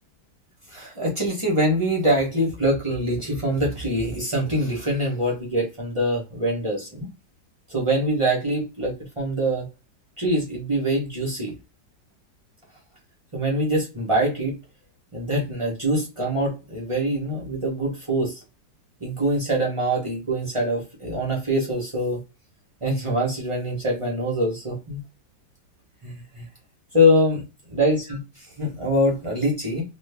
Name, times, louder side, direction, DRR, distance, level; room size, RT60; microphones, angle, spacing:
voice 1, 0.7-7.1 7.7-9.7 10.2-11.5 13.3-14.6 15.1-18.4 19.0-22.2 22.8-25.0 26.0-26.5 26.9-27.4 27.7-29.8, equal, 45° right, -3 dB, 0.4 m, -24 dB
3.1 x 2.1 x 3.3 m, 0.29 s
omnidirectional pair, 2.1 m